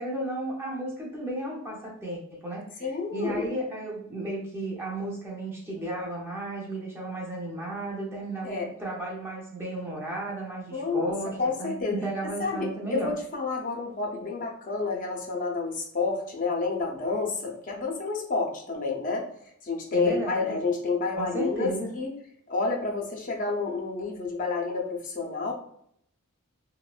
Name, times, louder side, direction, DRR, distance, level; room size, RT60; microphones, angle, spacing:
voice 1, 0.0-13.1 19.9-20.6 21.2-21.9, right 1 dB, 10° right, -4 dB, 0.6 m, -34 dB
voice 2, 2.8-3.5 8.4-8.7 10.7-11.1 11.4-11.9 12.4-19.3 19.6-22.1 22.5-25.5, left 4 dB, 40° left, 0 dB, 0.6 m, -29 dB
3.0 x 2.1 x 2.4 m, 0.69 s
head